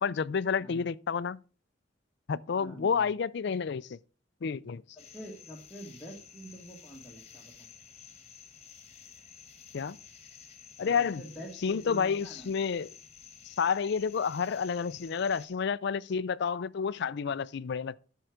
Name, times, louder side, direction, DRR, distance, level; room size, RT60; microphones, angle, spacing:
voice 1, 0.0-1.4 2.3-4.0 4.4-4.8 9.7-10.0 10.8-11.2 11.6-12.9 13.4-18.0, left 6 dB, 65° left, 0.4 m, -30 dB
voice 2, 2.5-3.1 5.0-7.7 10.8-12.5, equal, 10° left, 1.8 m, -46 dB
sound 1, 5.0-15.5, left 7 dB, 35° left, 1.6 m, -52 dB
12.5 x 4.6 x 5.0 m
head